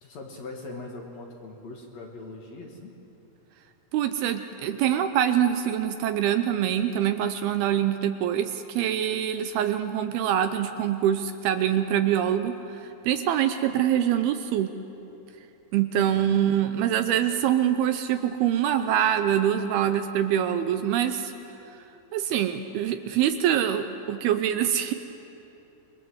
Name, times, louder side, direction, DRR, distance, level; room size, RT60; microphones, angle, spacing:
voice 1, 0.0-2.9 16.0-17.0, left 3 dB, 50° left, 1 dB, 2.7 m, -42 dB
voice 2, 3.9-14.7 15.7-21.3 22.1-24.9, right 10 dB, 75° right, 9 dB, 2.5 m, -24 dB
27.5 x 22.5 x 8.0 m, 3.0 s
omnidirectional pair, 4.9 m